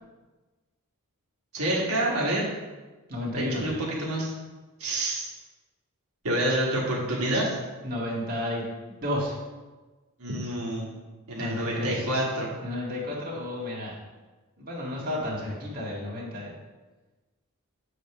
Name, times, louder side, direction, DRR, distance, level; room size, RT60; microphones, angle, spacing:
voice 1, 1.5-2.4 3.3-3.7 4.0-4.3 4.8-5.3 6.2-7.6 10.2-10.9 11.3-12.5, right 1 dB, 65° right, -4 dB, 1.6 m, -27 dB
voice 2, 3.1-3.6 7.8-9.4 11.4-12.1 12.6-14.0 14.6-16.5, left 1 dB, 40° right, -4 dB, 1.8 m, -32 dB
7.7 x 3.3 x 5.9 m, 1.2 s
head